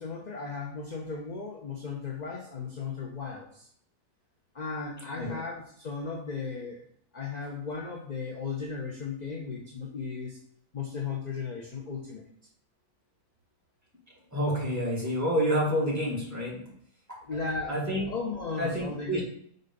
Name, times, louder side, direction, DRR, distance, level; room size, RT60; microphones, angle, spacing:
voice 1, 0.0-3.7 4.5-6.9 7.1-10.4 10.7-12.3 17.2-19.2, left 5 dB, 40° left, 0 dB, 0.7 m, -36 dB
voice 2, 14.3-16.6 17.1-17.2 17.7-18.1 18.6-19.2, equal, 10° right, -6 dB, 2.1 m, -28 dB
5.3 x 3.9 x 5.3 m, 0.65 s
omnidirectional pair, 1.6 m